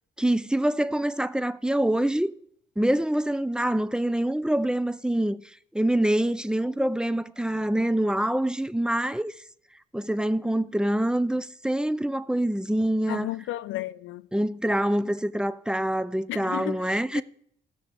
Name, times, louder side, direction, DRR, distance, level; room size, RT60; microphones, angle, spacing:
voice 1, 0.2-2.3 2.8-5.4 5.7-9.3 9.9-13.3 14.3-17.2, right 1 dB, 5° right, 0.4 m, -25 dB
voice 2, 13.1-14.3 16.3-17.2, left 16 dB, 80° left, 0.5 m, -34 dB
17.0 x 6.0 x 3.4 m
cardioid pair, 90°, 20 cm